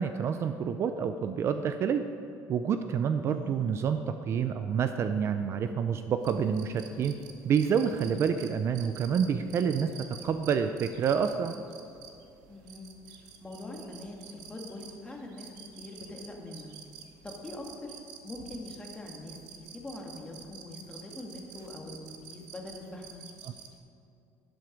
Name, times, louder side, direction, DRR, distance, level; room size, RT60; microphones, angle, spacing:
voice 1, 0.0-2.0 2.5-7.1 7.4-9.9 10.2-11.5 23.4-23.5, right 7 dB, 40° right, 9 dB, 0.5 m, -28 dB
voice 2, 3.3-3.7 12.5-12.9 13.4-15.5 15.8-16.7 17.2-18.0 18.2-23.2, left 2 dB, 15° left, 0 dB, 1.9 m, -43 dB
sound 1, 6.2-23.8, right 7 dB, 75° right, 1.3 m, -49 dB
11.5 x 11.5 x 5.2 m, 2.5 s
cardioid pair, 145°, 7 cm